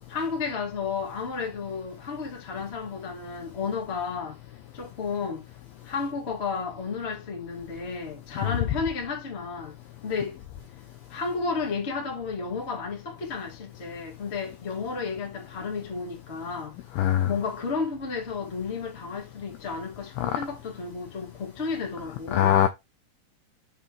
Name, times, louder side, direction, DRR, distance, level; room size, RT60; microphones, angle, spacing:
voice 1, 0.1-4.4 4.7-5.4 5.8-9.7 10.0-10.4 11.1-16.7 17.3-22.7, left 5 dB, 35° left, 1.0 m, -32 dB
voice 2, 17.0-17.3 20.2-20.3 22.3-22.7, left 11 dB, 80° left, 2.2 m, -21 dB
6.7 x 5.6 x 3.0 m
omnidirectional pair, 4.9 m